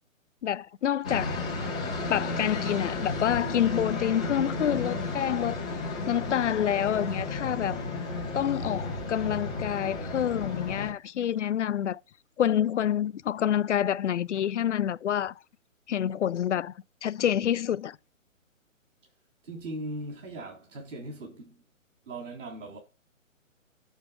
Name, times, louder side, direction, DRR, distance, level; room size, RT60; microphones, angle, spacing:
voice 1, 0.4-1.4 2.1-5.6 6.1-7.8 8.3-12.0 12.4-15.3 15.9-16.7 17.0-18.0, left 10 dB, 60° left, 0.5 m, -27 dB
sound 1, 1.0-10.9, left 3 dB, 5° left, 0.4 m, -33 dB
voice 2, 19.4-21.6 22.1-22.8, right 1 dB, 65° right, 3.0 m, -39 dB
7.2 x 6.9 x 3.6 m
figure-of-eight pair, 140°, 41 cm